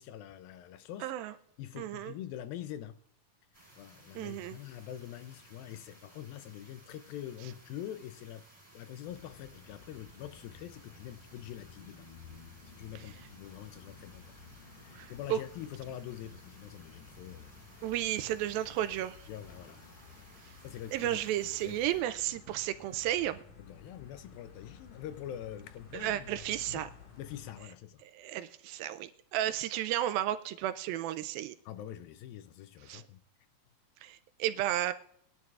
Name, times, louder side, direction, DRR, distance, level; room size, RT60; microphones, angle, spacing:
voice 1, 0.0-1.1 1.6-3.0 3.8-8.5 8.7-12.1 12.7-17.9 19.3-19.8 20.6-21.2 21.6-21.8 23.6-26.8 27.2-28.0 31.7-33.2, left 11 dB, 80° left, 2.2 m, -45 dB
voice 2, 1.0-1.3 1.8-2.1 4.2-4.6 15.0-15.4 17.8-19.3 20.9-23.4 25.9-26.9 28.1-31.6 32.9-33.0 34.0-34.9, right 13 dB, 80° right, 2.2 m, -33 dB
sound 1, 3.5-22.0, right 1 dB, 5° left, 4.0 m, -59 dB
sound 2, 9.1-27.6, left 5 dB, 60° left, 3.1 m, -54 dB
20.5 x 11.0 x 2.4 m
omnidirectional pair, 4.4 m